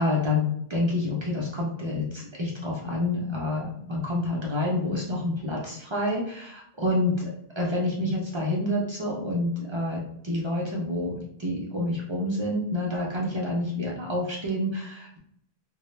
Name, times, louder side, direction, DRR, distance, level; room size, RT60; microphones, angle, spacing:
voice 1, 0.0-7.3 7.6-15.2, left 1 dB, 50° right, -3 dB, 0.3 m, -28 dB
2.1 x 2.0 x 3.1 m, 0.71 s
omnidirectional pair, 1.0 m